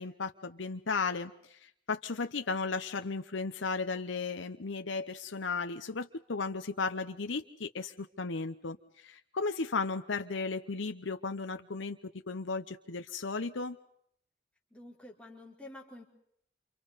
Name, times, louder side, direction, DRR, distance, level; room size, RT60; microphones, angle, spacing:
voice 1, 0.0-12.0 12.3-13.8, left 4 dB, 85° left, 8 dB, 0.9 m, -35 dB
voice 2, 14.7-16.0, left 1 dB, 5° left, -2 dB, 4.2 m, -49 dB
29.0 x 28.0 x 4.1 m, 0.69 s
head